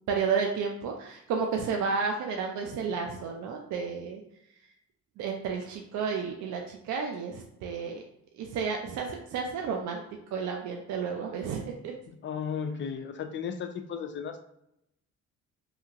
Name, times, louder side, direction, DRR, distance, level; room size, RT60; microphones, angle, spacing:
voice 1, 0.1-4.2 5.2-8.0 8.4-10.0 10.3-11.9, right 5 dB, 70° right, 2 dB, 0.4 m, -31 dB
voice 2, 12.1-14.4, left 7 dB, 40° left, 7 dB, 0.4 m, -35 dB
2.8 x 2.4 x 2.7 m, 0.80 s
cardioid pair, 90°, 30 cm